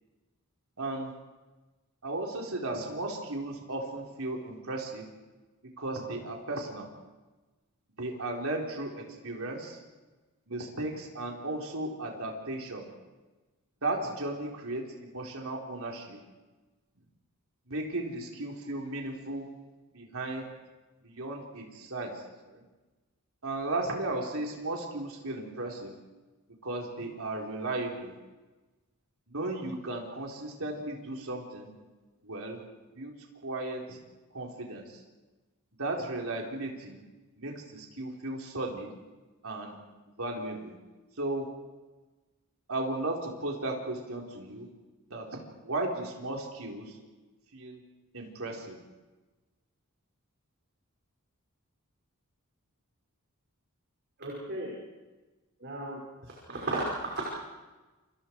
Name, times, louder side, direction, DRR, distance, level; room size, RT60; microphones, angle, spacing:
voice 1, 0.8-1.1 2.0-5.1 5.8-6.9 8.0-9.8 10.5-12.9 13.8-16.2 17.7-19.5 19.9-20.4 21.0-22.6 23.4-25.9 26.6-28.2 29.3-31.7 32.2-32.6 32.9-33.1 33.4-34.0 34.3-35.0 35.8-37.0 37.4-38.9 39.4-39.8 40.2-40.7 41.2-41.5 42.7-44.7 45.1-45.3 45.6-47.0 47.5-47.8 48.1-48.8, right 2 dB, 70° right, 0 dB, 4.4 m, -35 dB
voice 2, 54.2-54.7 55.6-56.0 56.5-57.2, right 2 dB, 50° right, -3 dB, 5.8 m, -34 dB
29.5 x 27.0 x 4.8 m, 1.2 s
head